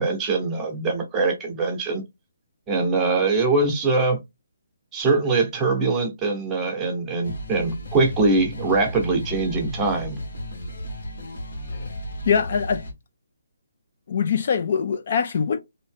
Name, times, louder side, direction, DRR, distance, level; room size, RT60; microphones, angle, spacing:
voice 1, 0.0-2.0 2.7-4.2 4.9-10.2, right 3 dB, 10° right, 0.8 m, -22 dB
sound 1, 7.2-12.9, equal, 60° left, 1.3 m, -34 dB
voice 2, 12.3-12.8 14.1-15.6, left 6 dB, 45° left, 0.3 m, -23 dB
2.8 x 2.6 x 3.5 m
hypercardioid pair, 170°, 0 cm